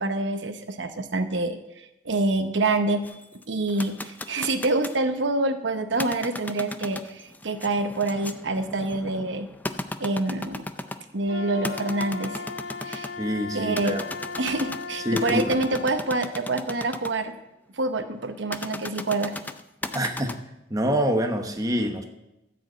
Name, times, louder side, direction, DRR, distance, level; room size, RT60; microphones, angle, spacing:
voice 1, 0.0-3.0 3.5-9.5 10.0-10.6 11.1-12.4 12.8-13.1 13.5-14.0 14.4-17.3 17.7-19.3, right 2 dB, 80° right, 9 dB, 0.9 m, -26 dB
sound 1, 3.0-5.0 5.9-11.1 11.6-13.2 13.7-17.1 18.5-20.3, left 2 dB, 10° left, 0.4 m, -36 dB
Wind instrument woodwind instrument, 11.3-15.9, left 4 dB, 80° left, 1.0 m, -37 dB
voice 2, 13.2-14.0 15.0-15.6 19.9-20.3 20.7-22.0, equal, 20° right, 5 dB, 0.9 m, -25 dB
13.5 x 5.2 x 7.8 m, 0.94 s
head